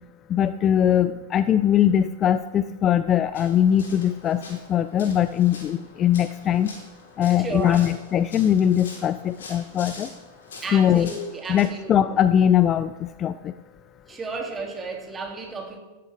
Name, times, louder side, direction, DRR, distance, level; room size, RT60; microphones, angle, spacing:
voice 1, 0.3-6.7 7.2-10.1 10.7-11.1 11.5-13.5, left 10 dB, 30° left, 14 dB, 0.4 m, -21 dB
sound 1, 3.3-11.7, left 3 dB, 60° left, 4.0 m, -45 dB
voice 2, 7.3-7.9 10.6-12.1 14.1-15.8, right 3 dB, 20° right, 1 dB, 2.9 m, -33 dB
16.0 x 13.5 x 3.6 m, 1.2 s
figure-of-eight pair, 90°, 0 cm